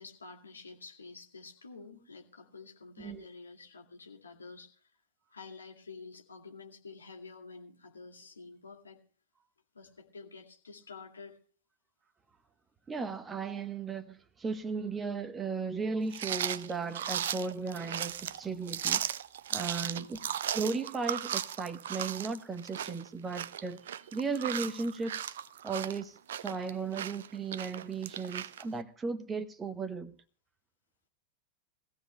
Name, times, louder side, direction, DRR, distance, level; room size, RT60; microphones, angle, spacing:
voice 1, 0.0-4.9 5.3-9.0 9.7-11.4 19.8-20.3, left 4 dB, 75° left, 2.2 m, -49 dB
voice 2, 12.9-19.1 19.5-20.2 20.5-23.8 24.1-25.4 25.6-30.1, right 4 dB, 15° right, 1.0 m, -36 dB
sound 1, 16.1-28.6, right 10 dB, 60° right, 0.5 m, -36 dB
21.5 x 15.0 x 2.2 m
figure-of-eight pair, 90°, 0 cm